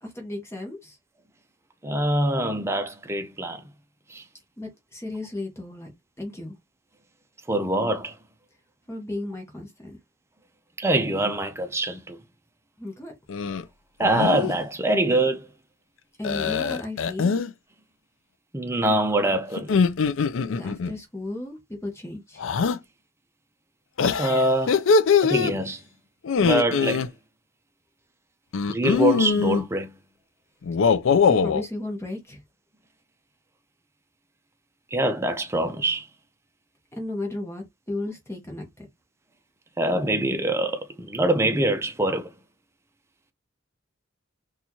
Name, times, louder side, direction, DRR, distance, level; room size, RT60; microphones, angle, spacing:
voice 1, 0.0-1.0 4.6-5.9 6.2-6.6 8.9-10.0 12.8-13.1 16.2-17.3 20.6-22.4 31.3-32.4 36.9-38.9, left 2 dB, 15° left, 1.0 m, -34 dB
voice 2, 1.8-3.6 4.1-4.2 7.5-8.1 10.8-12.2 14.0-15.5 18.5-19.7 24.2-24.8 25.2-25.8 26.4-27.0 28.7-29.9 34.9-36.0 39.8-42.3, right 1 dB, 15° right, 0.5 m, -24 dB
sound 1, 13.3-13.6 14.0-14.5 16.2-17.5 19.6-20.9 22.4-22.8 24.0-25.5 26.2-27.1 28.5-29.6 30.6-31.6, left 5 dB, 75° left, 0.4 m, -22 dB
4.1 x 2.4 x 2.9 m
head